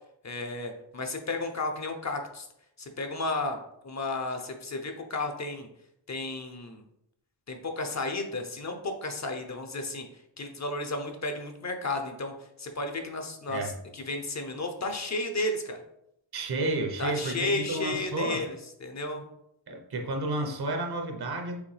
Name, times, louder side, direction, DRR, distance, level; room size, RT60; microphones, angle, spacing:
voice 1, 0.2-2.5 2.8-3.6 3.8-5.7 6.1-6.8 7.5-10.1 10.4-12.3 12.6-13.6 13.9-15.8 17.0-19.2, left 2 dB, 40° left, 5 dB, 0.6 m, -33 dB
voice 2, 16.3-18.4 19.7-21.6, right 2 dB, 55° right, 3 dB, 0.9 m, -31 dB
5.0 x 3.1 x 3.3 m, 0.78 s
wide cardioid pair, 105°, 45 cm